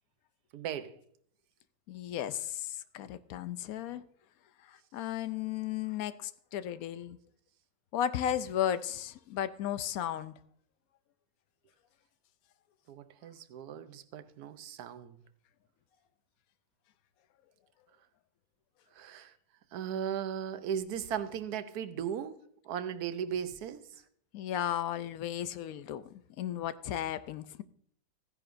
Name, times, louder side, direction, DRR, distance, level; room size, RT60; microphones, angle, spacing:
voice 1, 0.5-0.9 12.9-15.2 18.9-19.3 19.7-22.4 22.6-23.8, right 8 dB, 90° right, 1.2 m, -37 dB
voice 2, 1.9-4.0 4.7-7.2 7.9-10.3 24.3-27.6, left 11 dB, 75° left, 1.0 m, -35 dB
14.5 x 10.0 x 2.6 m
omnidirectional pair, 1.6 m